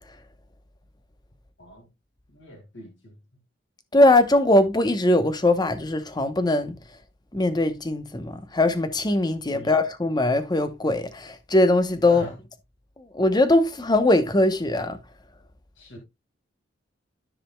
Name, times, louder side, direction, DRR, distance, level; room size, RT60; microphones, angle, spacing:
voice 1, 1.6-1.9 2.3-3.2 9.5-9.8 12.1-12.3 15.8-16.0, equal, 75° left, 2.0 m, -43 dB
voice 2, 3.9-6.8 7.3-12.3 13.1-15.0, left 1 dB, 20° left, 0.8 m, -21 dB
13.5 x 5.1 x 2.2 m
head